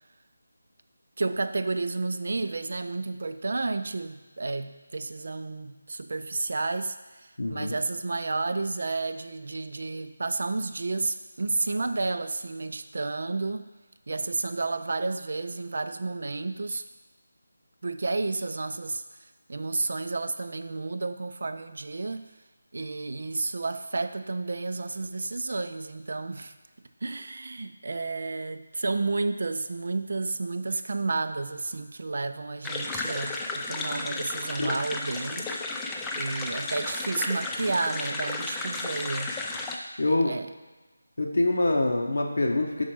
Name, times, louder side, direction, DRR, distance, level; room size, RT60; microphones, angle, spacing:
voice 1, 1.2-13.7 14.1-16.8 17.8-19.0 19.5-22.2 22.7-26.5 27.0-35.5 36.1-39.4 40.1-40.5, right 3 dB, 60° right, 10 dB, 0.4 m, -31 dB
voice 2, 7.4-7.7 34.6-34.7 40.0-40.3 41.2-42.8, left 2 dB, 75° left, 0 dB, 0.9 m, -25 dB
sound 1, 32.6-39.8, left 2 dB, 10° left, 0.4 m, -33 dB
6.1 x 4.4 x 4.6 m, 1.2 s
figure-of-eight pair, 165°, 0 cm